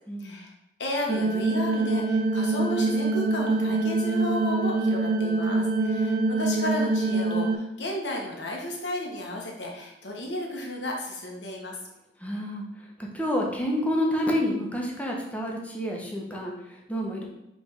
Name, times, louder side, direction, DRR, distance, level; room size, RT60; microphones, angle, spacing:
voice 1, 0.2-0.5 0.8-11.8, left 1 dB, 90° left, 0 dB, 1.4 m, -33 dB
sound 1, 1.1-7.6, right 3 dB, 50° right, 0.5 m, -25 dB
voice 2, 12.2-12.6 13.1-17.2, equal, 10° left, -1 dB, 1.1 m, -28 dB
5.1 x 3.5 x 5.2 m, 0.89 s
head